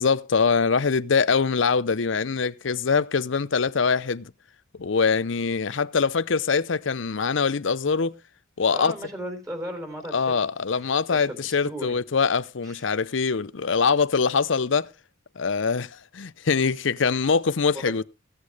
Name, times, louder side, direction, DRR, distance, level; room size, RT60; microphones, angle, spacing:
voice 1, 0.0-4.3 4.8-8.2 8.6-8.9 10.1-14.9 15.4-18.0, left 5 dB, 70° left, 0.6 m, -23 dB
voice 2, 8.7-12.0 12.6-12.9 17.7-17.9, equal, 15° right, 3.8 m, -37 dB
16.5 x 8.5 x 4.8 m
head